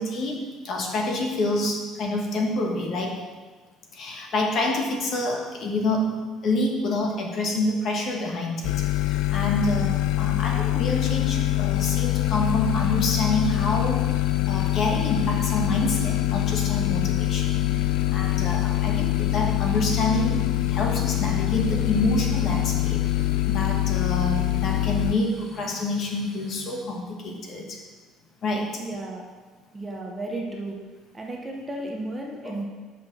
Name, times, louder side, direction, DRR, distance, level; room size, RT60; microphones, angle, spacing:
voice 1, 0.0-3.2 3.9-6.2 6.4-14.0 14.5-17.8 18.1-20.4 20.7-23.1 23.5-27.8 28.4-28.8 32.4-32.6, left 2 dB, 40° left, 1 dB, 1.3 m, -27 dB
sound 1, 8.6-25.1, left 17 dB, 85° left, 0.3 m, -24 dB
sound 2, 11.7-26.8, left 1 dB, 15° left, 1.1 m, -45 dB
voice 2, 28.8-29.2 29.7-30.8 31.1-32.6, right 2 dB, 15° right, -1 dB, 0.8 m, -33 dB
7.5 x 5.8 x 5.9 m, 1.4 s
cardioid pair, 170°, 0 cm